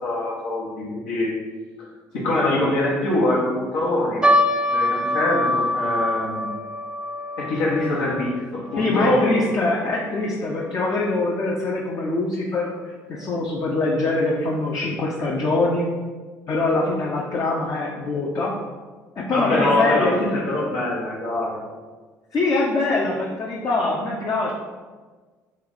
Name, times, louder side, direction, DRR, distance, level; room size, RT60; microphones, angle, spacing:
voice 1, 0.0-1.3 2.1-4.3 4.7-6.5 7.4-9.2 19.3-21.6, left 2 dB, 85° left, -6 dB, 1.0 m, -23 dB
sound 1, 4.2-10.7 11.0-11.1 11.8-12.1 12.7-12.8 13.2-13.3, left 1 dB, 10° right, 0.5 m, -25 dB
voice 2, 8.8-15.9 16.5-18.5 19.2-20.2 22.3-24.5, left 2 dB, 45° left, -3 dB, 0.6 m, -23 dB
3.2 x 2.4 x 3.9 m, 1.4 s
hypercardioid pair, 65°, 8 cm